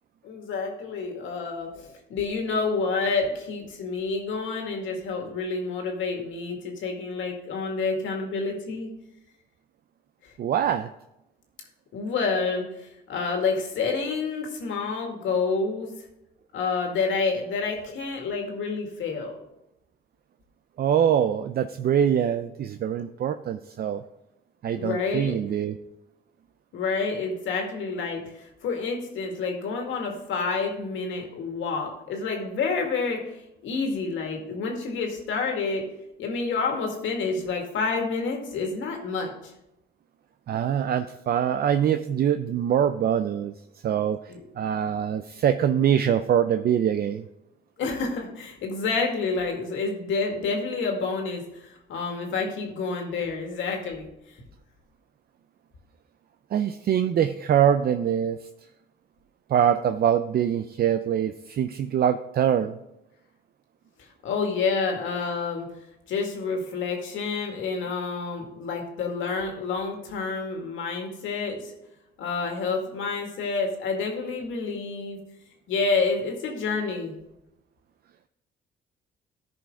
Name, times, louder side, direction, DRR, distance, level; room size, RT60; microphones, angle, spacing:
voice 1, 0.2-8.9 11.9-15.9 16.5-19.4 24.8-25.4 26.7-35.8 36.2-39.5 44.3-44.4 47.8-54.1 64.2-65.7 66.1-71.7 72.2-75.2 75.7-77.1, left 4 dB, 80° left, 2 dB, 2.0 m, -29 dB
voice 2, 10.4-10.9 20.8-24.0 24.6-25.8 40.5-43.5 43.8-44.2 44.6-47.2 56.5-58.4 59.5-62.8, right 9 dB, 50° right, 9 dB, 0.5 m, -24 dB
13.5 x 5.2 x 3.7 m, 0.86 s
cardioid pair, 90°, 20 cm